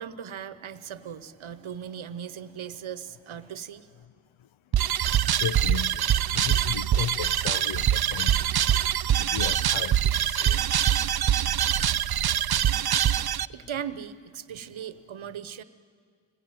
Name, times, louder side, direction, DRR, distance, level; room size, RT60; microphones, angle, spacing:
voice 1, 0.0-3.9 13.0-13.1 13.5-15.6, right 8 dB, 75° right, 1.1 m, -38 dB
sound 1, 4.7-13.5, right 10 dB, 50° right, 0.6 m, -24 dB
voice 2, 5.3-8.4 9.2-10.6, left 9 dB, 75° left, 0.7 m, -35 dB
25.5 x 19.5 x 9.4 m
cardioid pair, 55°, 48 cm